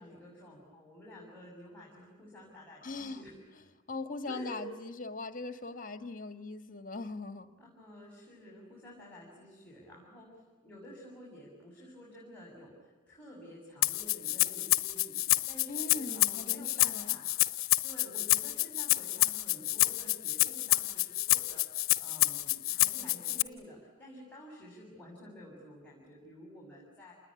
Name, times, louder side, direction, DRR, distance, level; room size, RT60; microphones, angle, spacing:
voice 1, 0.0-3.4 4.3-4.6 7.6-17.3 17.8-27.1, left 1 dB, 5° left, -4 dB, 7.0 m, -51 dB
voice 2, 2.8-3.2 3.9-7.5 15.7-17.2, left 3 dB, 40° left, 9 dB, 1.8 m, -40 dB
Rattle (instrument), 13.8-23.4, left 16 dB, 70° left, 1.0 m, -28 dB
28.5 x 20.5 x 10.0 m, 1.3 s
head